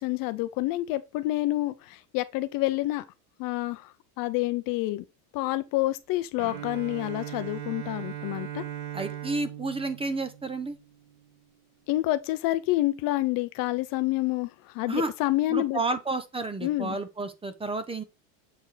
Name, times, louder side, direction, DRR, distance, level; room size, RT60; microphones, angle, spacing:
voice 1, 0.0-3.0 3.4-5.0 5.3-8.6 11.9-15.8 16.6-17.0, left 17 dB, 45° left, 0.6 m, -28 dB
Bowed string instrument, 6.4-11.2, right 11 dB, 70° right, 1.4 m, -39 dB
voice 2, 8.9-10.8 14.9-15.1 15.5-18.0, right 3 dB, 10° right, 0.7 m, -31 dB
7.4 x 4.5 x 3.2 m
supercardioid pair, 115°, 46 cm